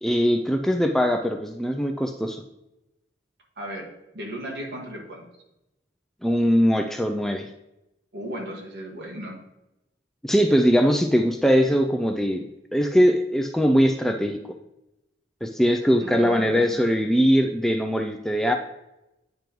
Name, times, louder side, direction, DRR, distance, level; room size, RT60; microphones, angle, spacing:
voice 1, 0.0-2.4 6.2-7.5 10.2-14.4 15.4-18.5, equal, ahead, 4 dB, 0.3 m, -21 dB
voice 2, 4.1-5.2 8.1-9.4 16.0-16.8, equal, 65° right, -1 dB, 1.7 m, -36 dB
9.0 x 3.0 x 5.1 m, 0.91 s
head